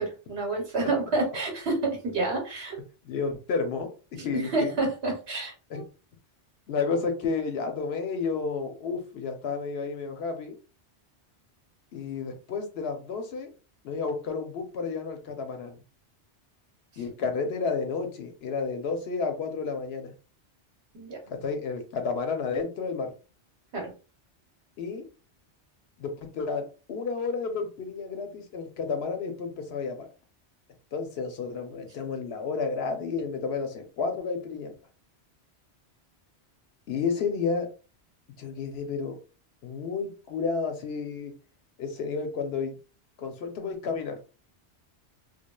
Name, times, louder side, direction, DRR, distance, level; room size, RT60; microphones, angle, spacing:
voice 1, 0.0-2.8 4.2-5.8 20.9-21.2 23.7-23.9, right 2 dB, 70° right, 0 dB, 1.1 m, -29 dB
voice 2, 3.0-4.7 5.7-5.8 6.7-10.5 11.9-13.5 13.8-15.8 17.0-20.1 21.3-23.1 24.8-25.0 26.0-30.1 30.9-34.7 36.9-37.7 38.4-39.2 39.6-41.3 41.8-42.7 43.2-44.2, left 5 dB, 70° left, 5 dB, 0.8 m, -31 dB
3.1 x 2.3 x 2.2 m, 0.34 s
omnidirectional pair, 1.2 m